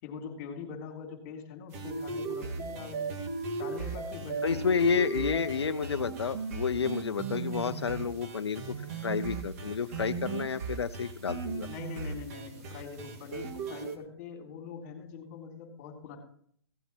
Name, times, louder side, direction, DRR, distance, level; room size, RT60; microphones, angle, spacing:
voice 1, 0.0-6.0 11.7-16.2, left 6 dB, 30° left, 2 dB, 3.8 m, -43 dB
sound 1, 1.7-14.0, right 4 dB, 35° right, 1.9 m, -37 dB
voice 2, 4.4-11.7, left 6 dB, 85° left, 9 dB, 0.6 m, -30 dB
16.5 x 8.2 x 4.4 m, 0.62 s
hypercardioid pair, 145°, 13 cm